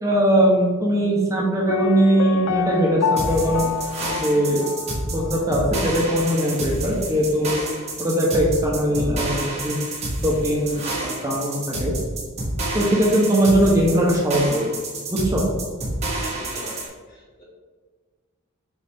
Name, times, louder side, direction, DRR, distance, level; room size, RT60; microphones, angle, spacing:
voice 1, 0.0-4.6 5.1-7.5 8.0-9.7 10.2-11.9 12.7-14.8 15.1-15.4, right 1 dB, 15° right, -3 dB, 1.0 m, -20 dB
Piano, 1.7-5.5 5.7-5.8, left 7 dB, 80° left, 0.4 m, -27 dB
sound 1, 3.2-16.9, right 2 dB, 30° right, 1.9 m, -29 dB
voice 2, 16.2-17.4, left 1 dB, 45° left, -5 dB, 2.0 m, -40 dB
8.2 x 3.9 x 3.6 m, 1.4 s
head